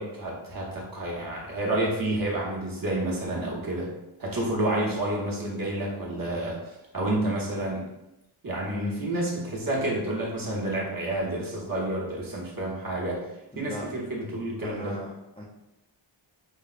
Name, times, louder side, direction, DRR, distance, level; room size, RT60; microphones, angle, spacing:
voice 1, 0.0-3.9 4.2-6.6 6.9-7.9 8.4-13.2 13.6-15.0, right 1 dB, 45° right, -4 dB, 0.9 m, -29 dB
voice 2, 13.5-13.9 14.6-15.4, left 1 dB, 10° left, -5 dB, 0.4 m, -38 dB
4.7 x 2.0 x 2.4 m, 0.92 s
wide cardioid pair, 90°, 47 cm